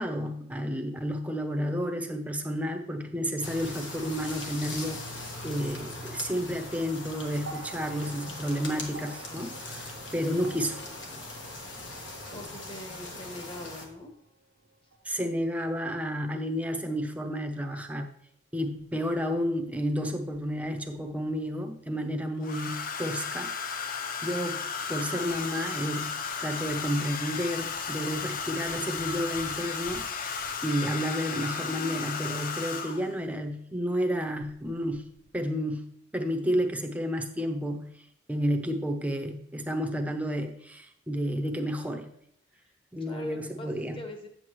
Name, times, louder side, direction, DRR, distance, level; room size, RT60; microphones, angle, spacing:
voice 1, 0.0-10.8 15.0-18.1 18.5-35.0 35.3-38.0 38.3-42.1 42.9-44.0, equal, 10° right, 5 dB, 0.6 m, -31 dB
sound 1, 3.4-13.9, left 2 dB, 75° left, 1.5 m, -40 dB
sound 2, 7.4-15.7 16.8-16.9, right 3 dB, 60° right, 0.7 m, -49 dB
voice 2, 12.3-14.1 42.6-42.7 43.0-44.3, left 1 dB, 25° left, 4 dB, 1.2 m, -41 dB
Domestic sounds home sounds, 18.8-18.9 20.3-21.0 22.4-33.2 34.4-34.7 34.9-35.3, left 5 dB, 45° left, 0.5 m, -34 dB
8.4 x 7.7 x 3.1 m, 0.71 s
head